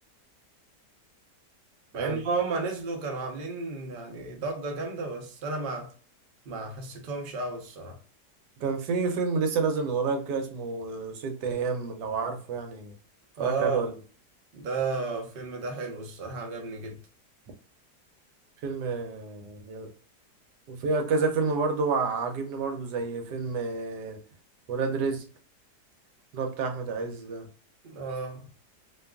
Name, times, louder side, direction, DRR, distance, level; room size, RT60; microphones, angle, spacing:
voice 1, 1.9-5.9 6.4-8.0 13.4-13.9 14.5-17.0 27.8-28.4, right 4 dB, 60° right, 0.5 m, -33 dB
voice 2, 8.6-13.0 13.4-13.9 18.6-19.9 20.7-24.2 24.7-25.3 26.3-27.5, right 4 dB, 90° right, 1.2 m, -29 dB
2.9 x 2.3 x 2.2 m
omnidirectional pair, 1.8 m